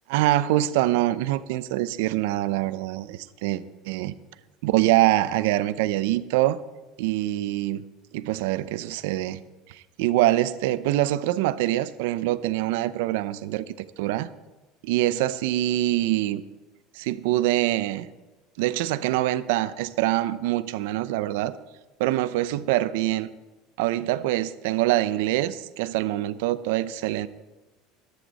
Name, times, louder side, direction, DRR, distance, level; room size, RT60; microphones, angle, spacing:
voice 1, 0.1-4.1 4.6-6.6 7.0-7.8 8.1-9.4 9.7-14.3 14.8-16.4 16.9-18.1 18.6-21.5 22.0-23.3 23.8-27.3, right 15 dB, 80° right, 15 dB, 0.6 m, -24 dB
14.0 x 11.5 x 4.1 m, 1.1 s
cardioid pair, 155°, 0 cm